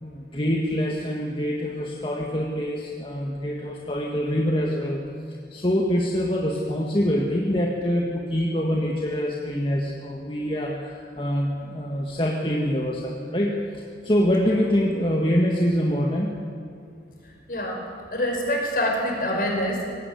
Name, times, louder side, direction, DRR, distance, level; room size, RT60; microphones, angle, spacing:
voice 1, 0.0-16.3, equal, 30° left, -1 dB, 1.8 m, -25 dB
voice 2, 17.5-17.8 18.1-19.9, left 1 dB, 50° left, 1 dB, 5.6 m, -25 dB
22.0 x 18.5 x 9.8 m, 2.4 s
head